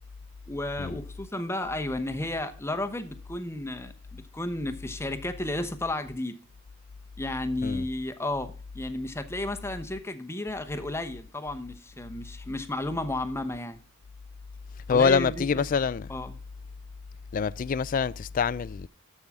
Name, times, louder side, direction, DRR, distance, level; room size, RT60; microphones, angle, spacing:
voice 1, 0.5-6.4 7.2-13.8 14.9-15.6 16.1-16.4, left 1 dB, 10° left, 0.8 m, -33 dB
voice 2, 14.9-16.1 17.3-18.9, left 6 dB, 40° left, 0.3 m, -25 dB
13.0 x 5.5 x 3.6 m
head